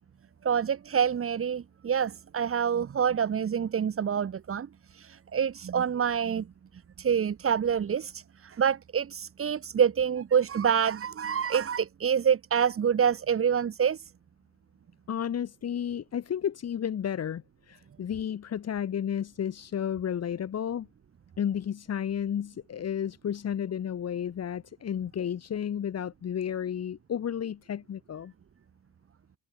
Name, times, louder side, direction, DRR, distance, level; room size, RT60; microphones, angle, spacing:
voice 1, 0.4-6.5 6.7-14.1, right 7 dB, 45° right, 5.6 m, -27 dB
voice 2, 15.1-20.9 21.4-28.3, left 9 dB, 50° left, 6.3 m, -32 dB
cardioid pair, 155°, 32 cm